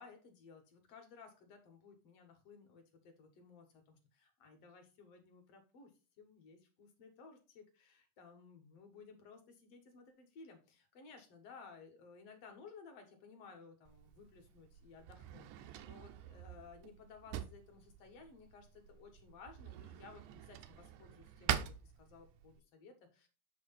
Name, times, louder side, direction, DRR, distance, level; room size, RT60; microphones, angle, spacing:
voice 1, 0.0-5.9 6.2-23.3, left 5 dB, 55° left, 4 dB, 2.3 m, -58 dB
Drawer open or close, 13.9-22.6, right 10 dB, 80° right, 2.0 m, -45 dB
8.7 x 3.2 x 5.6 m, 0.34 s
omnidirectional pair, 3.6 m